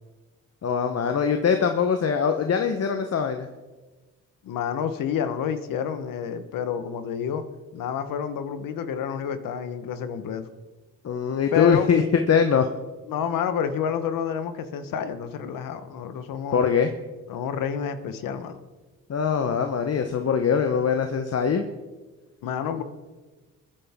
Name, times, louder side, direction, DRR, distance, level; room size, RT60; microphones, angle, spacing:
voice 1, 0.6-3.5 11.0-12.0 12.3-12.7 16.5-16.9 19.1-21.6, left 6 dB, 50° left, 6 dB, 1.0 m, -22 dB
voice 2, 4.4-7.4 7.7-10.5 11.5-11.9 13.1-16.6 17.3-18.5 22.4-22.8, left 7 dB, 85° left, 10 dB, 1.2 m, -29 dB
22.0 x 10.0 x 3.6 m, 1.2 s
cardioid pair, 75°, 33 cm